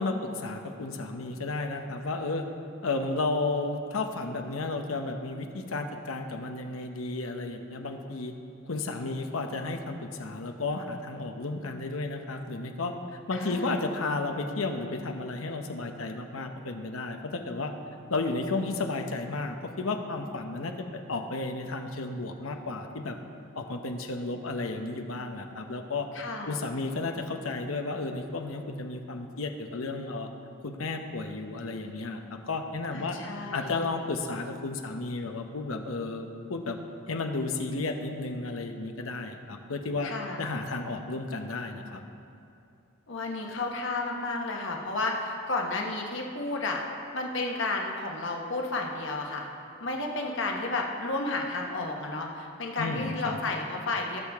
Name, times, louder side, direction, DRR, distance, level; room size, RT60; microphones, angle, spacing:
voice 1, 0.0-2.5 2.8-8.3 8.6-17.7 18.1-23.2 23.5-26.1 26.5-30.3 30.6-33.2 33.5-36.8 37.1-40.1 40.4-42.0 52.8-53.4, left 3 dB, 85° left, 5 dB, 0.9 m, -33 dB
voice 2, 13.4-13.7 26.1-26.6 32.9-33.8 40.0-40.4 43.1-46.8 47.1-49.5 49.8-54.2, left 2 dB, 65° left, 1 dB, 1.3 m, -32 dB
18.5 x 6.7 x 3.6 m, 2.7 s
head